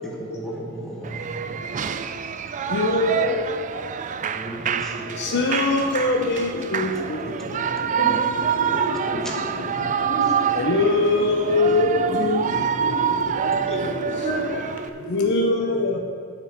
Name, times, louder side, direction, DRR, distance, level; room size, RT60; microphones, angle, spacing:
voice 1, 0.2-1.6 4.2-5.2 7.4-7.5 9.1-9.8 12.5-12.6 13.5-13.7, equal, ahead, -3 dB, 1.1 m, -35 dB
Shout / Cheering, 1.0-14.9, right 7 dB, 35° right, 0.4 m, -26 dB
voice 2, 1.5-1.9 2.7-3.5 4.7-4.8 5.1-7.6 10.5-13.5 14.2-14.3 15.1-16.0, left 2 dB, 55° left, 3 dB, 0.7 m, -23 dB
sound 1, 5.8-15.2, left 2 dB, 80° left, 1.0 m, -36 dB
voice 3, 8.7-9.2 10.1-10.7 13.7-13.8 14.2-15.9, equal, 30° left, -2 dB, 1.9 m, -31 dB
7.4 x 6.1 x 7.4 m, 2.3 s
head